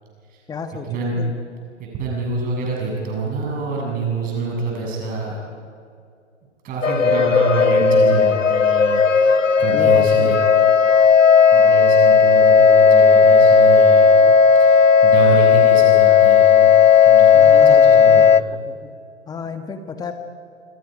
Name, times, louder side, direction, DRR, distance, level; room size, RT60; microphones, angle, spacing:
voice 1, 0.5-1.3 9.7-10.4 17.3-18.4 18.6-18.9 19.3-20.1, left 5 dB, 10° left, 7 dB, 1.5 m, -32 dB
voice 2, 1.9-5.4 6.6-10.4 11.5-14.2 14.6-16.7 17.1-18.5, right 3 dB, 25° right, -2 dB, 7.1 m, -26 dB
sound 1, 6.8-18.4, left 6 dB, 90° left, 0.8 m, -13 dB
28.5 x 28.0 x 5.2 m, 2.4 s
figure-of-eight pair, 125°, 37 cm